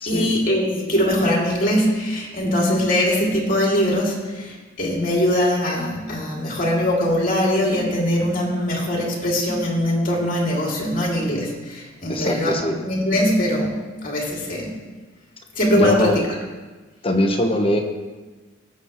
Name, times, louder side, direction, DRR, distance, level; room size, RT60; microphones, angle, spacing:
voice 1, 0.1-12.5 12.8-13.8 14.0-14.7 15.6-16.1, left 1 dB, 45° left, -3 dB, 2.9 m, -21 dB
voice 2, 12.1-12.8 15.7-16.2 17.0-17.8, left 1 dB, 30° left, 3 dB, 1.2 m, -21 dB
19.0 x 7.3 x 3.2 m, 1.3 s
head